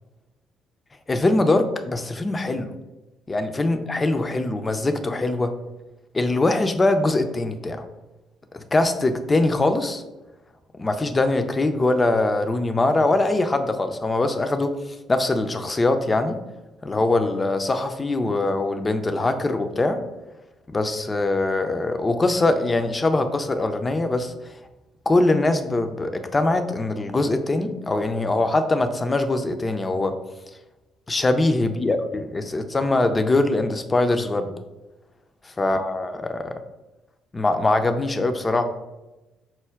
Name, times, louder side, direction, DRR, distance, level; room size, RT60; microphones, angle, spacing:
voice 1, 1.1-2.7 3.3-5.5 6.1-7.9 8.5-10.0 10.8-14.8 15.1-16.4 16.8-20.0 20.7-24.5 25.1-30.2 31.1-34.5 35.4-36.6 37.3-38.6, left 2 dB, 25° left, 8 dB, 0.4 m, -22 dB
4.4 x 2.2 x 3.5 m, 1.1 s
hypercardioid pair, 50°, 0 cm